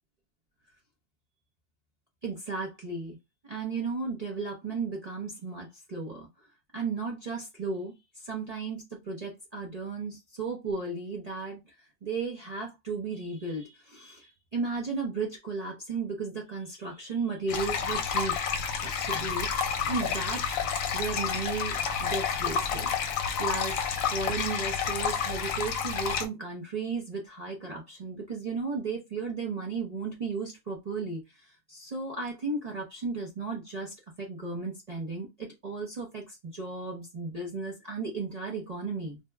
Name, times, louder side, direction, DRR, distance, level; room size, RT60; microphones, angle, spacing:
voice 1, 2.2-3.2 3.4-6.3 6.7-8.0 8.2-18.4 18.8-19.5 19.8-20.5 20.9-22.9 23.4-39.2, right 4 dB, 40° right, 0.6 m, -35 dB
sound 1, 17.5-26.3, left 6 dB, 75° left, 0.9 m, -30 dB
2.8 x 2.0 x 3.3 m
omnidirectional pair, 1.5 m